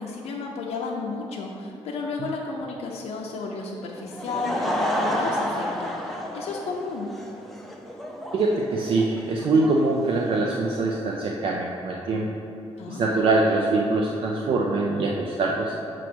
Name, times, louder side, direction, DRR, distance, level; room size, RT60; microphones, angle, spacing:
voice 1, 0.0-7.1 12.8-13.2, left 3 dB, 80° left, -2 dB, 0.6 m, -33 dB
Laughter / Crowd, 4.0-10.9, equal, ahead, 0.5 m, -30 dB
voice 2, 8.3-12.3 12.9-15.7, right 3 dB, 55° right, -1 dB, 0.5 m, -23 dB
7.5 x 3.0 x 6.1 m, 2.8 s
cardioid pair, 155°, 11 cm